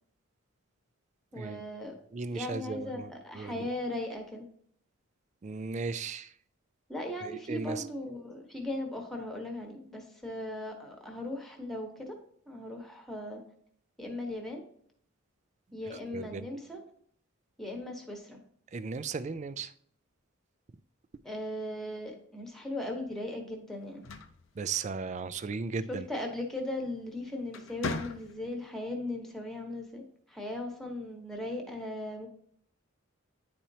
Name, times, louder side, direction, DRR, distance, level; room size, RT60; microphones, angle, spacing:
voice 1, 1.3-1.9 2.3-4.5 6.9-12.2 12.5-13.4 14.0-14.6 15.7-16.8 17.6-18.4 21.2-24.0 25.9-32.3, left 1 dB, ahead, 1.1 m, -38 dB
voice 2, 2.1-3.7 5.4-6.3 7.2-7.9 16.1-16.5 18.7-19.7 24.6-26.1, right 4 dB, 35° right, 0.3 m, -36 dB
sound 1, 23.8-25.4 26.8-27.1 27.5-28.7, left 3 dB, 70° left, 0.7 m, -40 dB
10.0 x 4.3 x 2.7 m
head